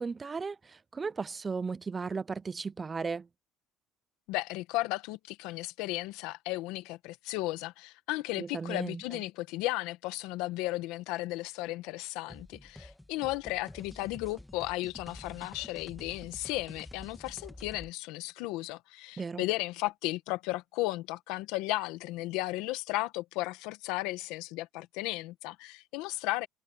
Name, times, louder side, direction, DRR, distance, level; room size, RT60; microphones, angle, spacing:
voice 1, 0.0-3.3 8.4-9.0 19.2-19.4, right 4 dB, 20° right, 0.4 m, -35 dB
voice 2, 4.3-26.5, left 19 dB, 85° left, 1.6 m, -35 dB
sound 1, 12.3-17.9, left 1 dB, 5° left, 1.7 m, -49 dB
cardioid pair, 130°, 0 cm